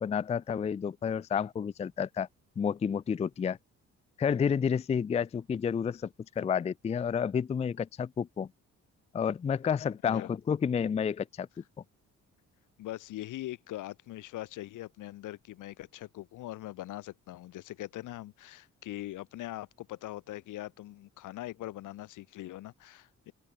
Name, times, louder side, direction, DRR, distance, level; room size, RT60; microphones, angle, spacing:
voice 1, 0.0-2.3 2.6-3.6 4.2-6.1 6.4-8.5 9.1-11.5, left 7 dB, 20° left, 0.4 m, -30 dB
voice 2, 12.8-23.3, left 15 dB, 85° left, 2.9 m, -42 dB
cardioid pair, 90°, 30 cm